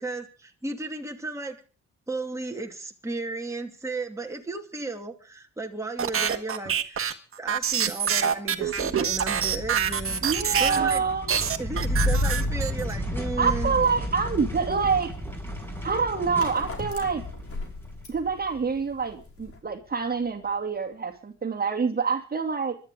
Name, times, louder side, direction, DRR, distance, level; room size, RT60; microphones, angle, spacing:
voice 1, 0.0-1.6 2.1-7.1 7.4-10.2 10.6-11.0 11.6-13.8, right 2 dB, 10° right, 2 dB, 2.6 m, -34 dB
sound 1, 6.0-11.0 11.3-12.9, right 8 dB, 45° right, 1.7 m, -26 dB
sound 2, 8.6-19.2, left 1 dB, 5° left, 6.5 m, -32 dB
voice 2, 10.2-11.3 13.4-15.1 15.8-17.2 18.1-22.8, right 5 dB, 30° right, 3 dB, 2.4 m, -26 dB
sound 3, 14.2-19.6, left 3 dB, 50° left, 5.0 m, -40 dB
25.5 x 12.0 x 3.7 m, 0.37 s
cardioid pair, 90°, 30 cm